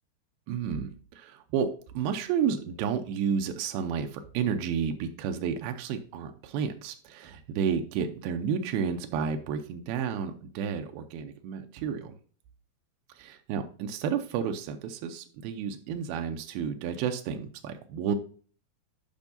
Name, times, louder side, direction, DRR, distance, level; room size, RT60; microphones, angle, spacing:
voice 1, 0.5-12.2 13.2-18.2, right 7 dB, 85° right, 6 dB, 2.2 m, -31 dB
10.5 x 5.3 x 2.6 m, 0.42 s
omnidirectional pair, 5.0 m